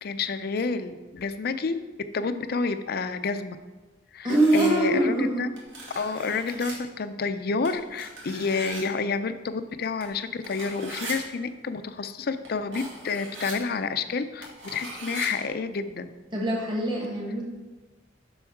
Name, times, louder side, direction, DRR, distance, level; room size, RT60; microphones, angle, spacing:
voice 1, 0.0-1.8 2.1-3.6 4.1-5.5 5.9-16.1, left 4 dB, 55° left, 11 dB, 0.5 m, -29 dB
voice 2, 4.2-5.3 16.3-17.4, right 1 dB, 25° right, -3 dB, 1.5 m, -23 dB
sound 1, 4.3-4.7 5.6-6.7 7.6-8.9 10.0-10.1 10.4-11.1 12.4-12.5 12.7-13.5 14.4-15.3, right 2 dB, 80° right, 2.3 m, -39 dB
7.1 x 6.2 x 4.5 m, 1.2 s
head